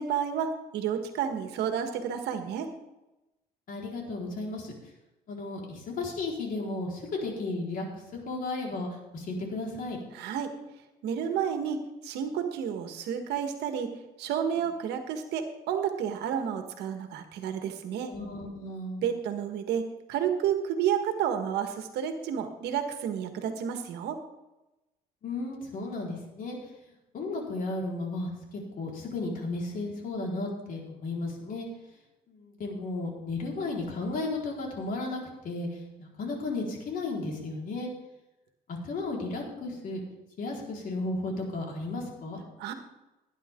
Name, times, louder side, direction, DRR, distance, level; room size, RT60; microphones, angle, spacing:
voice 1, 0.0-2.7 10.1-10.5 11.0-18.1 19.0-24.2 42.6-42.7, right 8 dB, 80° right, 6 dB, 1.6 m, -31 dB
voice 2, 3.7-4.7 5.3-8.9 9.1-10.0 18.1-19.1 25.2-26.6 27.1-31.7 32.3-37.9 38.7-40.0 40.4-42.4, left 2 dB, 55° left, -1 dB, 4.6 m, -34 dB
18.5 x 10.0 x 3.8 m, 0.97 s
cardioid pair, 110°, 17 cm